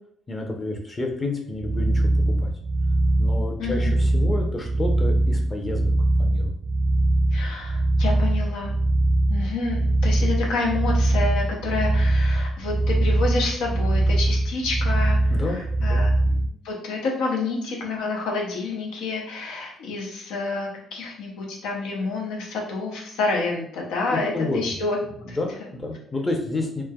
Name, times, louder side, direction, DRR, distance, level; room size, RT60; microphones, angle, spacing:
voice 1, 0.3-2.5 3.2-5.9 6.2-6.5 15.3-15.6 15.9-16.1 24.1-24.8 25.2-26.8, left 2 dB, 25° left, 1 dB, 0.7 m, -30 dB
sound 1, 1.6-16.5, right 2 dB, 40° right, 0.4 m, -22 dB
voice 2, 3.6-3.9 7.3-8.8 9.3-25.4, left 3 dB, 90° left, -1 dB, 0.7 m, -29 dB
3.2 x 2.1 x 2.3 m, 0.66 s
cardioid pair, 85°, 0 cm